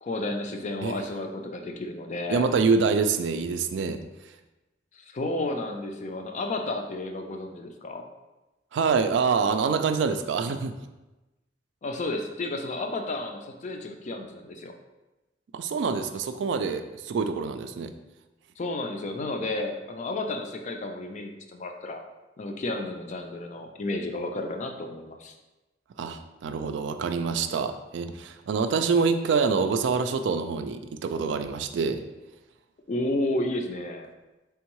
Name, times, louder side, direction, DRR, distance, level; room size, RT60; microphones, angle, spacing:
voice 1, 0.0-2.4 4.9-8.1 11.8-14.7 18.6-22.1 22.4-25.3 32.9-34.1, left 2 dB, 40° left, 4 dB, 0.4 m, -32 dB
voice 2, 2.3-4.0 8.7-10.7 15.5-17.9 26.0-32.0, right 5 dB, 80° right, 8 dB, 0.3 m, -26 dB
3.5 x 3.5 x 3.0 m, 1.1 s
head